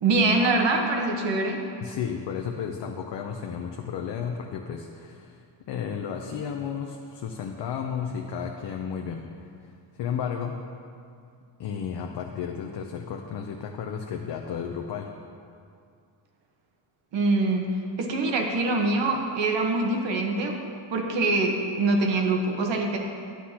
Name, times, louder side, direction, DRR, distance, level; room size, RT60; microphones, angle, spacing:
voice 1, 0.0-1.6 17.1-17.6 18.0-20.6 20.9-23.0, right 2 dB, 65° right, 2 dB, 1.2 m, -24 dB
voice 2, 1.8-9.7 9.9-10.6 11.6-15.1, left 7 dB, 60° left, 3 dB, 0.7 m, -33 dB
11.5 x 9.5 x 2.9 m, 2.4 s
cardioid pair, 150°, 47 cm